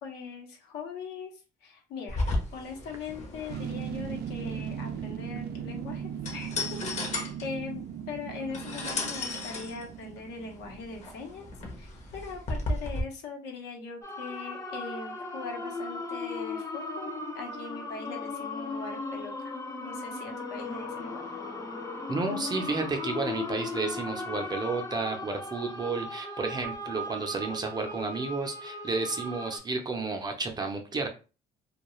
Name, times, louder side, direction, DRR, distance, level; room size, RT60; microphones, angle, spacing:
voice 1, 0.0-2.2 2.5-6.7 7.0-7.1 7.4-11.5 11.8-19.5 19.8-21.2, left 5 dB, 80° left, 1 dB, 0.9 m, -41 dB
sound 1, 2.1-13.0, left 2 dB, 45° left, 0.8 m, -35 dB
sound 2, 3.5-12.0 12.3-12.4, right 9 dB, 75° right, 0.4 m, -38 dB
sound 3, 14.0-29.6, left 2 dB, 20° left, 0.5 m, -37 dB
voice 2, 22.1-31.1, right 3 dB, 25° right, 4 dB, 0.6 m, -32 dB
2.3 x 2.3 x 3.0 m, 0.33 s
cardioid pair, 110°, 17 cm